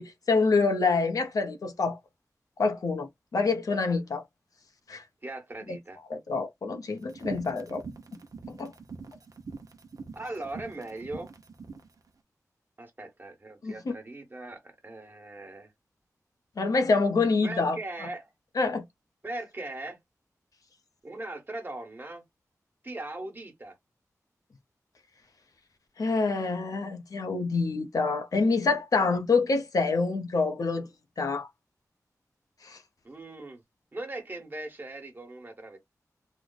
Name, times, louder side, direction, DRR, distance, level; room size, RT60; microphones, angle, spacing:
voice 1, 0.0-2.0 2.6-4.2 4.9-5.0 5.7-5.8 6.1-7.8 8.5-8.7 13.6-13.9 16.6-17.8 18.6-18.8 26.0-30.9 31.2-31.5 32.6-32.8, left 4 dB, 75° left, 0.7 m, -26 dB
voice 2, 5.2-6.0 10.1-11.3 12.8-15.7 17.4-18.3 19.2-20.0 21.0-22.2 22.8-23.7 33.0-33.6 33.9-35.8, right 2 dB, 30° right, 1.2 m, -39 dB
sound 1, 7.0-11.9, right 4 dB, 75° right, 0.7 m, -43 dB
3.2 x 2.1 x 3.9 m
wide cardioid pair, 115°, 6 cm